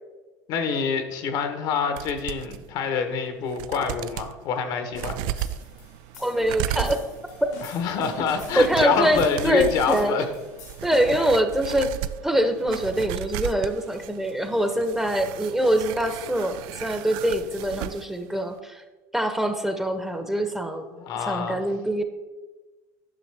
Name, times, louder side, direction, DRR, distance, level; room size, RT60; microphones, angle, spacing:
voice 1, 0.5-5.4 7.6-10.2 11.2-11.3 20.9-21.6, left 6 dB, 60° left, 7 dB, 1.0 m, -26 dB
sound 1, 2.0-2.6 3.1-3.2 3.5-4.3 4.9-18.1 18.3-18.4, right 12 dB, 65° right, 0.3 m, -35 dB
sound 2, 4.9-11.3, left 3 dB, 85° left, 1.8 m, -45 dB
voice 2, 6.2-7.0 7.4-7.5 8.5-10.2 10.8-11.9 12.2-18.8 19.1-20.9 21.2-22.0, right 1 dB, 5° right, 7 dB, 0.8 m, -24 dB
10.0 x 6.2 x 3.4 m, 1.2 s
hypercardioid pair, 80°, 8 cm